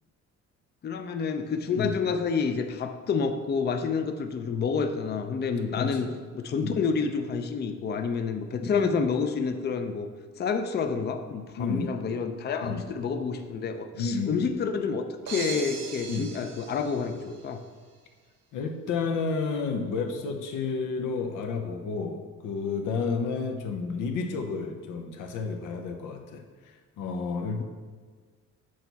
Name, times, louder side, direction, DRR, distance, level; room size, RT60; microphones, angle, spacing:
voice 1, 0.8-6.1 6.3-10.1 10.4-17.6, left 5 dB, 35° left, 7 dB, 0.5 m, -29 dB
voice 2, 5.8-6.2 6.6-6.8 8.6-8.9 11.6-11.9 12.6-12.9 13.9-14.4 16.1-16.3 18.5-26.4 27.0-27.6, left 4 dB, 90° left, 4 dB, 0.7 m, -31 dB
sound 1, 15.3-17.5, right 5 dB, 55° right, 1.0 m, -39 dB
6.4 x 4.6 x 4.0 m, 1.5 s
cardioid pair, 90°, 30 cm